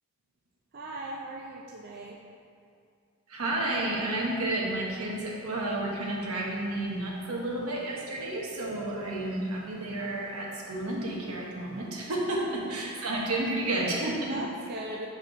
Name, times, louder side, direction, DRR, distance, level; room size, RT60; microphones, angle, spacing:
voice 1, 0.7-2.2 12.6-12.9 14.3-15.1, right 1 dB, 45° right, -1 dB, 0.4 m, -39 dB
voice 2, 3.3-14.4, right 1 dB, 80° right, -3 dB, 1.1 m, -31 dB
6.2 x 4.3 x 3.8 m, 2.3 s
head